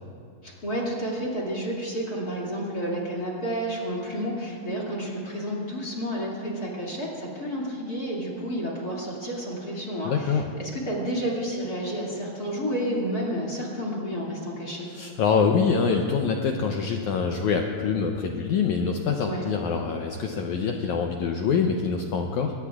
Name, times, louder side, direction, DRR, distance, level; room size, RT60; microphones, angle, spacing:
voice 1, 0.4-14.9 19.2-19.5, equal, 30° left, -3 dB, 2.3 m, -30 dB
voice 2, 10.0-10.4 14.9-22.5, left 5 dB, 90° left, 3 dB, 1.6 m, -25 dB
22.5 x 19.5 x 2.4 m, 2.4 s
omnidirectional pair, 4.4 m